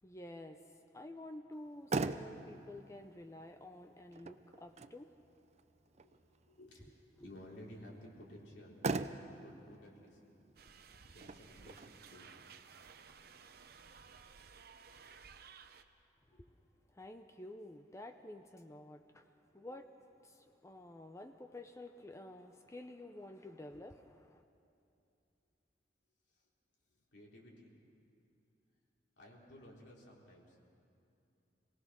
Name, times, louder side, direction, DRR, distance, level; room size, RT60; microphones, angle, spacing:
voice 1, 0.0-0.6 0.9-5.1 7.2-7.3 16.4-16.5 16.9-19.2 19.5-19.9 20.2-24.4, left 1 dB, 15° left, 0.6 m, -50 dB
Motor vehicle (road), 1.5-14.5, right 3 dB, 40° right, 0.6 m, -44 dB
voice 2, 5.9-8.8 9.3-10.4 11.1-12.2 16.3-16.6 19.2-19.8 27.1-27.7 29.2-30.6, left 1 dB, 75° left, 3.8 m, -56 dB
sound 1, 10.6-15.8, right 6 dB, 60° right, 0.9 m, -57 dB
27.0 x 18.5 x 6.3 m
head